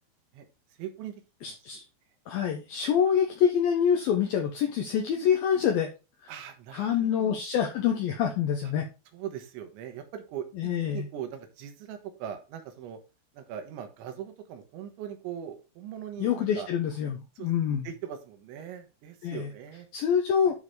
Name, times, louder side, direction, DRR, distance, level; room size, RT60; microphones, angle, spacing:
voice 1, 0.8-1.2 1.5-1.6 3.0-3.2 6.3-7.4 9.1-13.0 13.4-16.7 17.4-17.5 17.9-19.9, right 9 dB, 80° right, 7 dB, 3.6 m, -40 dB
voice 2, 1.4-1.8 2.3-5.9 6.7-8.9 10.6-11.1 16.2-17.9 19.2-19.5 19.9-20.5, left 8 dB, 75° left, 3 dB, 2.2 m, -26 dB
9.6 x 4.1 x 4.8 m, 0.30 s
omnidirectional pair, 5.3 m